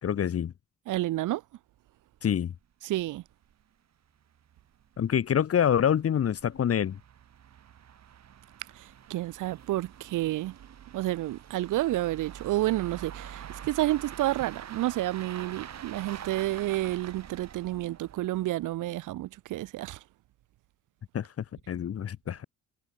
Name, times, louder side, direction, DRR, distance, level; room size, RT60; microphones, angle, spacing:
voice 1, 0.0-0.5 2.2-2.5 5.0-7.0 21.1-21.3 21.7-22.4, left 9 dB, 50° left, 1.5 m, -26 dB
voice 2, 0.9-1.4 2.8-3.2 8.7-10.5 10.9-20.0, right 16 dB, 90° right, 3.9 m, -30 dB
sound 1, 2.2-2.3 2.5-2.6 3.1-3.2 3.5-3.6 4.2-18.6, right 9 dB, 60° right, 7.7 m, -46 dB
cardioid pair, 90°, 30 cm